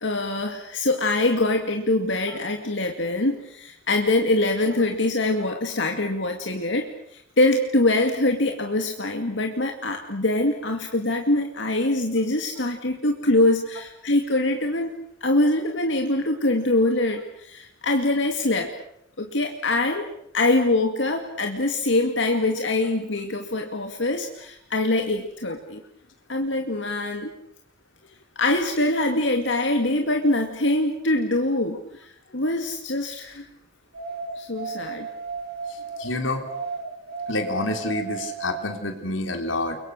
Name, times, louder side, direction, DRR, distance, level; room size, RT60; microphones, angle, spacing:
voice 1, 0.0-18.7 19.2-20.1 20.3-25.8 26.3-27.3 28.4-33.5 34.4-35.1, left 2 dB, 70° left, 3 dB, 2.3 m, -24 dB
sound 1, 33.9-36.1 36.4-38.7, right 4 dB, 55° right, 4.5 m, -34 dB
voice 2, 35.7-36.5 37.3-39.8, left 2 dB, 85° left, 5 dB, 3.8 m, -28 dB
29.5 x 23.5 x 6.6 m, 0.72 s
head